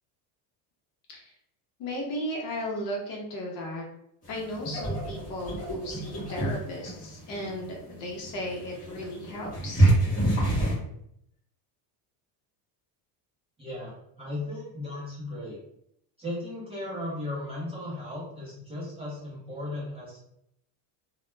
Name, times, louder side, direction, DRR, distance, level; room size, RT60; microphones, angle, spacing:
voice 1, 1.8-3.8 4.3-9.9, equal, 45° left, -1 dB, 0.7 m, -35 dB
sound 1, 4.2-10.8, right 1 dB, 15° left, 0.9 m, -28 dB
voice 2, 13.6-15.6 16.2-20.2, left 1 dB, 15° right, -9 dB, 0.5 m, -36 dB
2.2 x 2.1 x 3.1 m, 0.74 s
cardioid pair, 165°, 48 cm